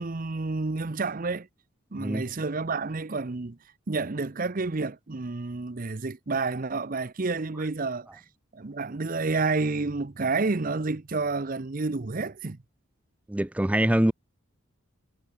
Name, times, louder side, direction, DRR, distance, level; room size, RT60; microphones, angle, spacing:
voice 1, 0.0-1.5 1.9-3.6 3.9-8.2 8.5-12.6, right 3 dB, 45° right, 0.7 m, -29 dB
voice 2, 13.3-14.1, right 1 dB, 5° right, 0.4 m, -24 dB
head